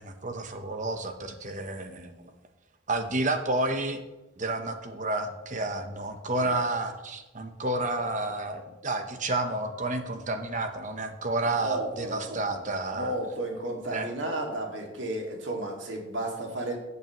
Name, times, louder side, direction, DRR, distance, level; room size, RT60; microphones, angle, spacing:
voice 1, 0.0-2.3 2.9-4.0 4.4-13.1 13.9-14.1, right 2 dB, 40° right, 7 dB, 1.0 m, -30 dB
voice 2, 11.6-12.6 12.9-16.8, right 1 dB, 90° right, 1 dB, 2.2 m, -33 dB
14.5 x 8.4 x 3.0 m, 1.1 s
head